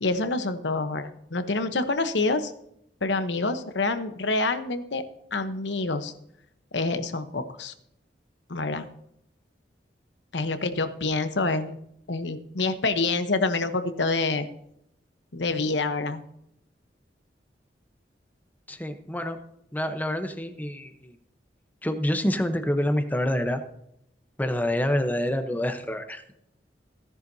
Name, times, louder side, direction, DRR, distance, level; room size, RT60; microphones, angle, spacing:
voice 1, 0.0-2.5 3.0-5.0 5.3-6.1 6.7-7.7 8.5-8.9 10.3-11.8 12.1-14.5 15.3-16.2, left 3 dB, 90° left, 9 dB, 1.0 m, -27 dB
voice 2, 18.7-19.4 19.7-21.2 21.8-23.6 24.4-26.2, left 1 dB, 10° left, 8 dB, 0.9 m, -27 dB
16.5 x 10.5 x 2.8 m, 0.77 s
head